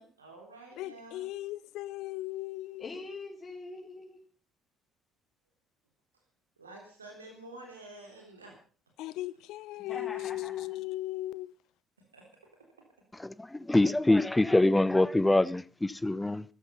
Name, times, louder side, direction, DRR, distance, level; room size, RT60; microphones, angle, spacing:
voice 1, 0.0-1.2 6.6-8.5 12.1-12.3, right 2 dB, 90° right, 3.5 m, -49 dB
voice 2, 0.8-2.9 9.0-11.5, left 16 dB, 65° left, 0.8 m, -37 dB
voice 3, 2.8-4.2 9.9-10.7, left 3 dB, 40° left, 4.8 m, -42 dB
voice 4, 13.2-16.4, left 2 dB, 10° left, 0.9 m, -25 dB
15.5 x 13.5 x 5.7 m
figure-of-eight pair, 50°, 0 cm